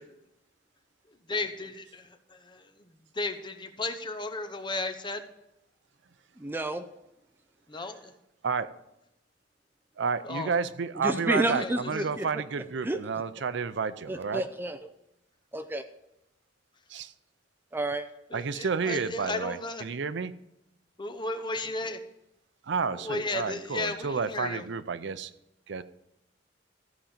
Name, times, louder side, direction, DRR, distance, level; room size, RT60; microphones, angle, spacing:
voice 1, 1.1-5.3 7.7-8.1 10.2-10.5 11.5-11.9 18.3-19.8 21.0-22.0 22.9-24.6, left 2 dB, 25° left, 7 dB, 0.9 m, -35 dB
voice 2, 6.4-6.8 11.0-12.3 12.8-13.0 14.1-14.8 15.5-15.8 17.7-18.1, right 1 dB, 10° right, 9 dB, 0.5 m, -30 dB
voice 3, 10.0-14.4 16.9-17.1 18.3-20.3 22.6-25.3 25.7-25.8, right 5 dB, 70° right, 14 dB, 0.5 m, -31 dB
14.5 x 5.1 x 7.2 m, 0.86 s
head